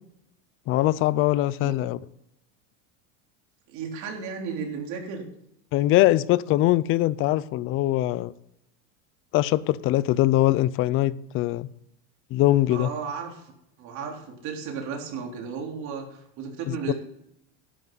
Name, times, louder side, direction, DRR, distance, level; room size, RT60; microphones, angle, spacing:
voice 1, 0.7-2.0 5.7-8.3 9.3-11.7 12.3-12.9 16.7-16.9, left 15 dB, 35° left, 0.4 m, -22 dB
voice 2, 3.7-5.3 12.7-13.5 13.8-16.9, right 6 dB, 50° right, 3.6 m, -34 dB
12.0 x 11.5 x 3.9 m
supercardioid pair, 150°, 37 cm